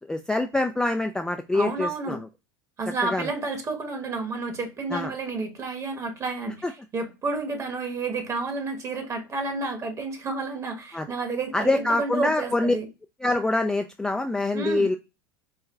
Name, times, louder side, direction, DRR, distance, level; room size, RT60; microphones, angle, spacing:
voice 1, 0.1-2.3 3.1-3.3 4.9-5.1 6.6-6.7 10.9-11.1 11.5-12.8 13.2-14.9, left 2 dB, 5° left, 0.3 m, -25 dB
voice 2, 1.5-2.2 2.8-12.9 14.5-14.9, right 3 dB, 30° right, 1.3 m, -30 dB
4.4 x 2.3 x 3.6 m
hypercardioid pair, 90°, 11 cm